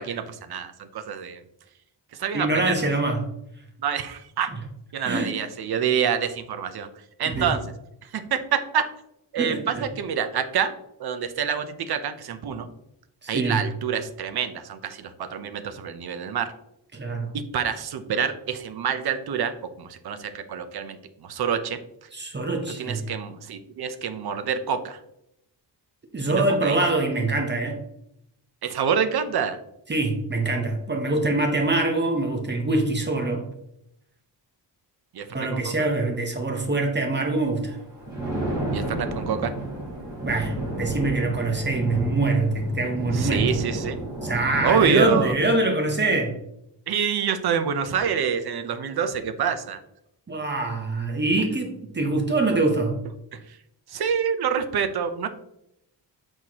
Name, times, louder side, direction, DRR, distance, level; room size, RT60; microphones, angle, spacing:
voice 1, 0.0-1.4 2.2-2.8 3.8-4.5 4.9-6.9 7.2-7.6 8.0-8.9 9.3-10.7 11.0-12.7 13.3-16.5 17.3-19.5 19.8-22.1 22.8-25.0 26.3-26.9 28.6-29.6 35.1-35.7 38.7-39.5 43.1-44.0 44.6-45.3 46.9-49.8 53.3-53.6 53.9-55.3, right 7 dB, 60° right, 10 dB, 0.7 m, -27 dB
voice 2, 2.3-3.2 5.0-5.4 7.2-7.5 9.4-9.9 13.2-13.6 16.9-17.4 22.1-23.1 26.1-27.8 29.9-33.5 35.3-37.8 40.2-43.6 44.2-46.4 50.3-53.0, right 2 dB, 25° right, 2 dB, 0.8 m, -24 dB
Thunder, 37.8-45.5, right 1 dB, 10° right, 2.5 m, -31 dB
7.9 x 4.5 x 2.9 m, 0.79 s
wide cardioid pair, 170°, 44 cm